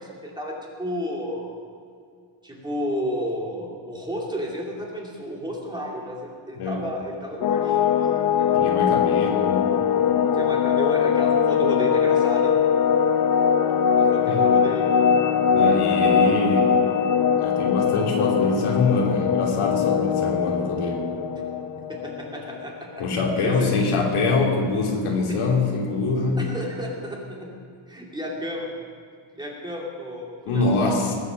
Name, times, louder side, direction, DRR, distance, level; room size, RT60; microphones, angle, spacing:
voice 1, 0.0-1.5 2.4-8.5 10.3-12.5 14.0-14.9 15.8-16.5 21.9-23.1 23.4-23.9 25.3-25.4 26.4-27.5 27.9-28.7 29.4-31.0, equal, 10° right, -2 dB, 2.4 m, -32 dB
sound 1, 7.4-22.6, left 7 dB, 45° left, 0.7 m, -21 dB
voice 2, 8.5-9.7 14.3-14.5 15.5-16.8 17.2-21.1 23.0-26.4 30.4-31.1, left 3 dB, 80° left, -1 dB, 3.2 m, -24 dB
20.5 x 8.4 x 6.3 m, 2.3 s
cardioid pair, 170°, 49 cm